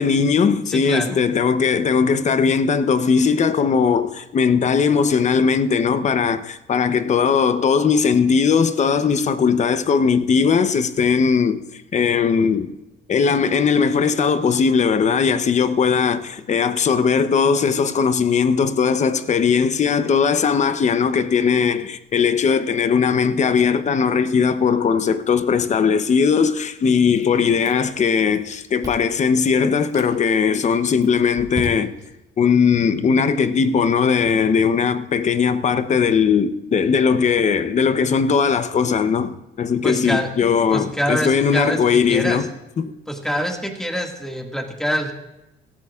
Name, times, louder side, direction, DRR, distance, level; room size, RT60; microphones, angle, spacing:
voice 1, 0.0-12.7 13.1-31.9 32.4-42.5 42.8-42.9, left 6 dB, 40° left, 0.8 m, -19 dB
voice 2, 0.7-1.2 39.8-40.3 40.7-41.8 42.1-42.4 43.1-45.1, equal, 5° left, 1.9 m, -25 dB
Chewing mastication, 27.1-28.1 28.3-29.2 29.7-30.1 30.7-32.1, right 1 dB, 20° right, 2.2 m, -35 dB
17.5 x 14.0 x 2.4 m
cardioid pair, 100°, 18 cm